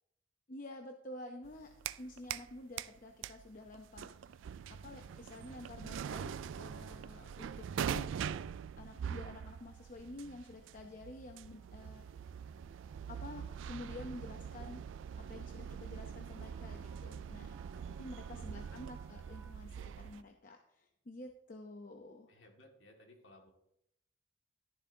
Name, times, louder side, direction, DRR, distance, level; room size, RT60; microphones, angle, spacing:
voice 1, 0.5-1.7 1.9-4.4 4.7-8.1 8.8-12.0 13.1-14.8 15.2-17.6 17.9-22.3, left 2 dB, 45° left, 3 dB, 0.7 m, -50 dB
sound 1, 1.4-2.5 2.8-20.2, right 8 dB, 75° right, 0.3 m, -43 dB
sound 2, 3.5-3.6 3.8-19.5, right 5 dB, 15° right, 0.9 m, -70 dB
voice 2, 7.2-7.6 17.7-18.5 22.3-23.5, left 1 dB, 65° left, 1 dB, 2.0 m, -62 dB
12.0 x 11.0 x 2.7 m, 0.78 s
head